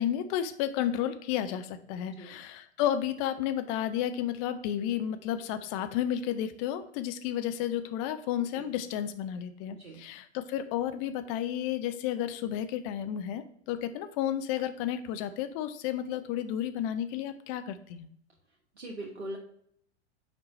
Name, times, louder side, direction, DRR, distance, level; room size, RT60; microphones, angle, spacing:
voice 1, 0.0-18.1, left 10 dB, 30° left, 9 dB, 0.5 m, -32 dB
voice 2, 2.1-2.4 8.6-8.7 9.7-10.0 18.8-19.4, right 1 dB, 75° right, -1 dB, 1.1 m, -41 dB
6.0 x 4.5 x 4.1 m, 0.66 s
figure-of-eight pair, 100°, 34 cm